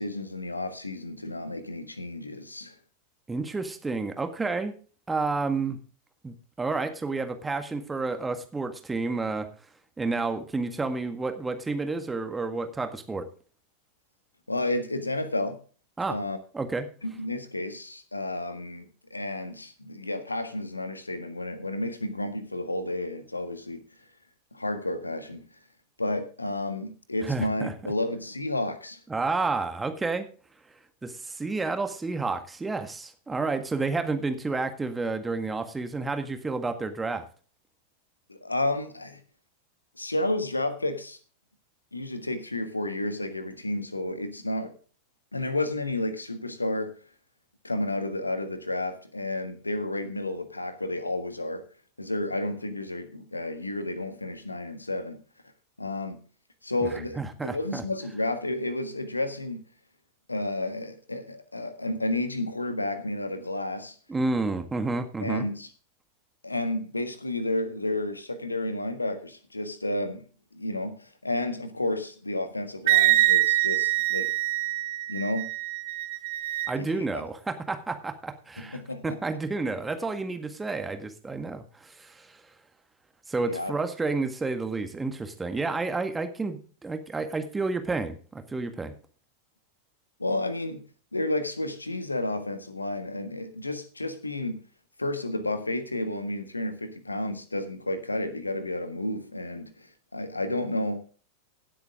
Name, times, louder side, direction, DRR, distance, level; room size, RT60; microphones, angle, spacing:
voice 1, 0.0-2.7 14.5-15.6 16.1-16.4 17.0-23.8 24.5-25.5 26.0-29.0 38.3-39.2 39.9-41.2 41.9-44.7 45.3-47.0 47.6-51.6 52.0-55.2 55.8-56.2 56.6-59.6 60.3-63.9 65.2-65.7 66.4-74.4 75.1-75.5 76.7-77.2 78.6-79.1 83.4-83.7 90.2-90.9 91.1-94.6 95.0-101.1, left 1 dB, 80° left, 1.5 m, -31 dB
voice 2, 3.3-4.8 5.1-5.8 6.2-9.5 10.0-13.3 16.0-16.2 16.5-16.9 27.2-27.7 29.1-30.3 31.0-37.3 56.8-57.8 64.1-65.5 76.7-82.4 83.3-88.9, right 3 dB, 10° right, 1.7 m, -30 dB
Wind instrument woodwind instrument, 72.9-76.7, right 17 dB, 50° right, 0.8 m, -24 dB
17.0 x 8.1 x 3.7 m
figure-of-eight pair, 90°, 0 cm